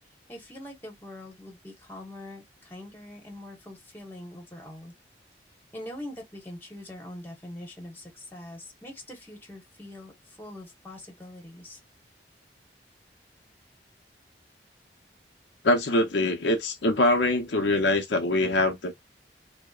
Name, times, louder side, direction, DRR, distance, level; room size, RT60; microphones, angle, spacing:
voice 1, 0.3-4.9 5.7-11.8, left 1 dB, 10° left, 1.0 m, -43 dB
voice 2, 15.6-18.9, left 2 dB, 85° left, 0.6 m, -23 dB
2.7 x 2.0 x 2.3 m
head